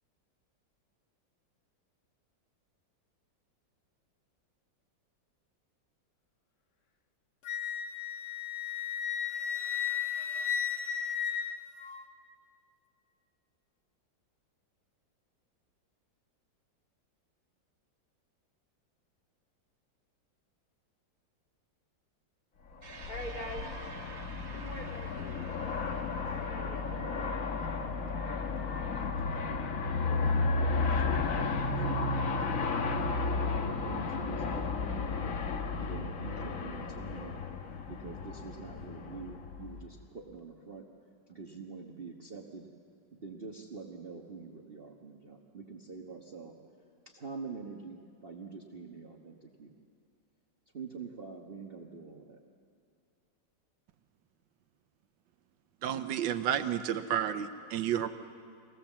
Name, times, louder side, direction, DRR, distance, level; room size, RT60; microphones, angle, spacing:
Wind instrument woodwind instrument, 7.4-12.0, left 8 dB, 65° left, 1.6 m, -34 dB
Aircraft, 22.8-40.0, left 4 dB, 50° left, 1.4 m, -33 dB
sound 1, 22.8-31.5, right 4 dB, 60° right, 1.9 m, -52 dB
voice 1, 23.1-23.6 24.5-25.5 26.2-27.3, equal, 25° left, -1 dB, 2.5 m, -44 dB
voice 2, 29.9-32.7 33.4-35.4 35.8-37.4 37.9-40.9 41.3-42.7 43.1-49.7 50.7-52.4, right 4 dB, 35° right, 0 dB, 1.2 m, -46 dB
voice 3, 55.8-58.1, right 9 dB, 85° right, 10 dB, 1.5 m, -31 dB
25.5 x 18.0 x 7.3 m, 2.4 s
omnidirectional pair, 2.0 m